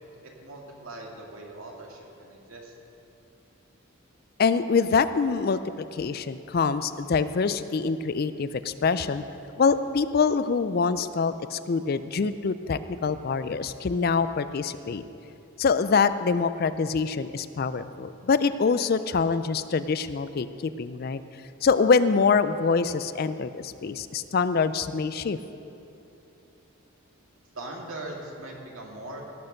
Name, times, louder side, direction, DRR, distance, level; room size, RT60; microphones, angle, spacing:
voice 1, 0.4-2.7 27.5-29.3, right 2 dB, 70° right, 0 dB, 2.1 m, -40 dB
voice 2, 4.4-9.2 9.6-15.0 15.6-21.2 21.6-25.4, left 5 dB, 45° left, 13 dB, 0.4 m, -25 dB
17.5 x 6.7 x 6.5 m, 2.9 s
head